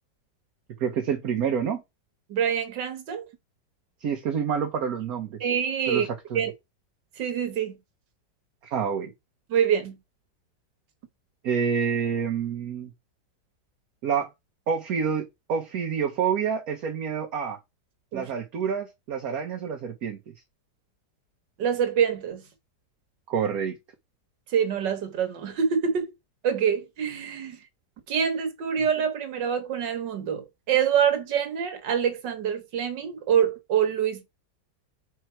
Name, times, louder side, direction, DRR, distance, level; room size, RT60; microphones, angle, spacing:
voice 1, 0.8-1.8 4.0-5.4 5.9-6.4 8.6-9.1 11.4-12.9 14.0-14.3 14.7-17.6 18.1-20.2 23.3-23.8, right 7 dB, 60° right, 1.3 m, -28 dB
voice 2, 2.3-3.3 5.4-6.1 6.4-6.5 7.2-7.8 9.5-10.0 18.1-18.3 21.6-22.4 24.5-26.1 26.4-27.6 28.1-34.2, right 8 dB, 85° right, 1.9 m, -25 dB
5.3 x 4.7 x 4.5 m
omnidirectional pair, 1.9 m